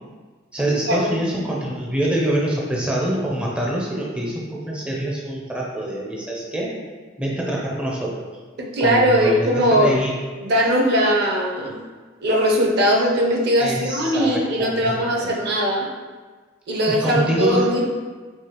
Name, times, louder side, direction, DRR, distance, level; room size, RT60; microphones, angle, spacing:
voice 1, 0.5-6.7 7.2-8.1 8.8-10.1 13.6-15.3 16.9-17.7, right 1 dB, 5° right, -3 dB, 0.4 m, -25 dB
voice 2, 8.6-9.9 10.4-11.8 12.2-15.9 16.7-17.9, equal, 55° right, -1 dB, 0.6 m, -20 dB
4.7 x 2.3 x 2.9 m, 1.4 s
head